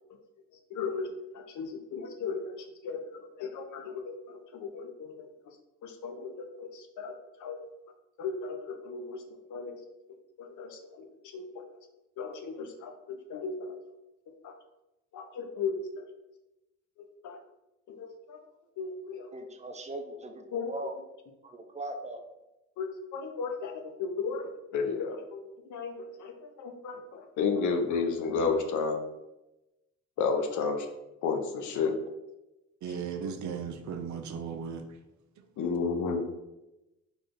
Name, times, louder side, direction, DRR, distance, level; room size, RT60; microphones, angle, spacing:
voice 1, 0.7-1.1 1.3-5.3 5.8-7.1 7.4-7.6 8.2-9.2 9.5-9.8 10.4-11.5 12.2-13.7 14.4-14.5 15.1-16.0 17.0-17.4 17.9-18.4 18.8-19.3 20.5-20.7 22.8-29.0 30.2-30.9 31.2-32.0 35.6-36.3, left 5 dB, 75° left, 5 dB, 0.7 m, -33 dB
voice 2, 19.3-20.9 21.4-22.2, right 1 dB, 25° right, 5 dB, 0.6 m, -39 dB
voice 3, 32.8-34.9, right 6 dB, 70° right, 6 dB, 0.6 m, -36 dB
4.0 x 3.2 x 3.7 m, 0.96 s
cardioid pair, 90°, 30 cm